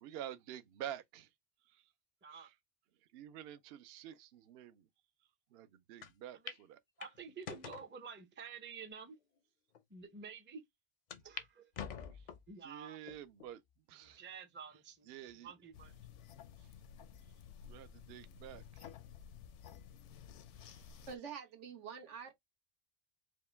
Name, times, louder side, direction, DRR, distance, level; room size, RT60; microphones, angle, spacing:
voice 1, 0.0-1.3 1.6-1.9 2.3-2.6 3.0-4.9 5.5-6.8 11.8-12.3 12.6-13.6 13.9-14.3 14.7-14.8 15.0-15.5 16.6-16.7 17.3-17.4 17.6-18.9 20.6-21.1, right 11 dB, 65° right, 0.7 m, -49 dB
sound 1, 6.0-6.1 6.5-6.6 7.0-7.9 8.6-8.7 9.4-9.5 9.7-9.8 11.1-11.5 11.7-12.5 13.1-13.5 14.1-14.2 15.3-15.7, left 7 dB, 55° left, 0.5 m, -46 dB
voice 2, 7.0-9.2 9.9-10.7 11.2-11.7 12.5-13.0 14.2-15.1 15.4-15.9, right 6 dB, 15° right, 0.4 m, -50 dB
sound 2, 15.7-21.2, left 8 dB, 85° left, 0.9 m, -54 dB
voice 3, 21.1-22.3, right 6 dB, 85° right, 1.4 m, -46 dB
4.9 x 2.1 x 3.3 m
omnidirectional pair, 1.2 m